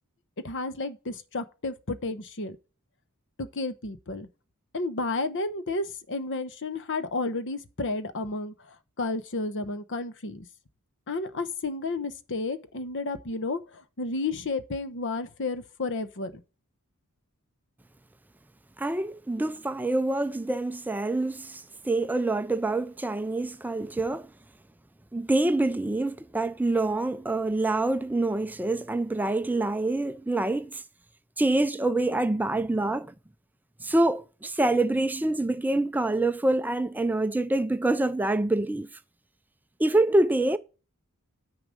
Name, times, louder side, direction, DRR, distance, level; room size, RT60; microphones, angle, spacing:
voice 1, 0.4-2.6 3.4-4.3 4.7-10.5 11.1-16.3, left 3 dB, 55° left, 0.9 m, -32 dB
voice 2, 18.8-24.3 25.1-30.8 31.4-33.1 33.8-38.9 39.8-40.6, right 2 dB, 10° right, 0.4 m, -26 dB
9.7 x 4.8 x 5.1 m
head